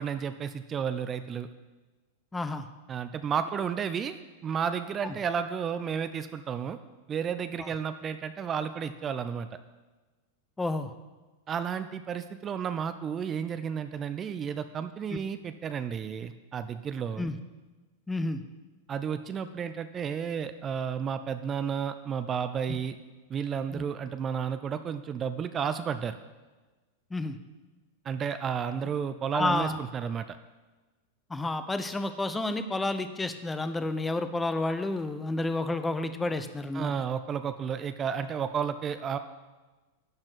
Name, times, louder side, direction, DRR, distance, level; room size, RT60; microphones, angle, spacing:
voice 1, 0.0-1.5 2.9-6.8 7.1-9.5 11.5-17.3 18.9-23.0 23.3-26.2 28.0-30.4 36.7-39.2, right 7 dB, 30° right, 11 dB, 0.6 m, -32 dB
voice 2, 2.3-2.7 7.6-7.7 10.6-10.9 17.2-17.3 18.1-18.4 23.7-23.8 27.1-27.4 29.3-29.8 31.3-36.9, left 2 dB, 10° left, 10 dB, 0.9 m, -30 dB
12.0 x 4.3 x 8.1 m, 1.2 s
hypercardioid pair, 100°, 0 cm